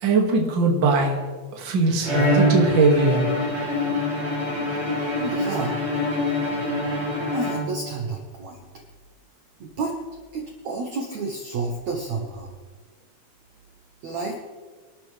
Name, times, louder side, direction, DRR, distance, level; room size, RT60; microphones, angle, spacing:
voice 1, 0.0-1.2 1.5-3.3, right 3 dB, 40° right, 0 dB, 1.7 m, -20 dB
Bowed string instrument, 2.0-8.1, left 1 dB, 25° right, 4.9 m, -25 dB
voice 2, 5.1-5.8 7.3-8.6 9.6-10.0 10.3-12.5 14.0-14.3, right 4 dB, 70° right, 0 dB, 1.7 m, -30 dB
26.0 x 12.5 x 3.4 m, 1.4 s
omnidirectional pair, 5.5 m